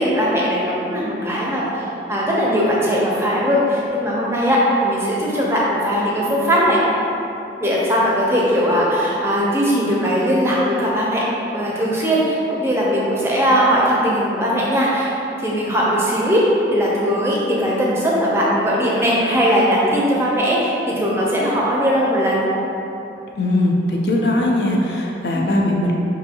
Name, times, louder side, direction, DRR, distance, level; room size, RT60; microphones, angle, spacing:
voice 1, 0.0-1.6 2.1-6.8 7.6-11.2 11.5-15.1 15.4-16.4 16.7-22.4 25.3-25.6, equal, 15° right, -5 dB, 0.5 m, -19 dB
voice 2, 23.4-25.9, left 1 dB, 70° left, -1 dB, 0.5 m, -19 dB
5.3 x 2.7 x 2.7 m, 2.9 s
head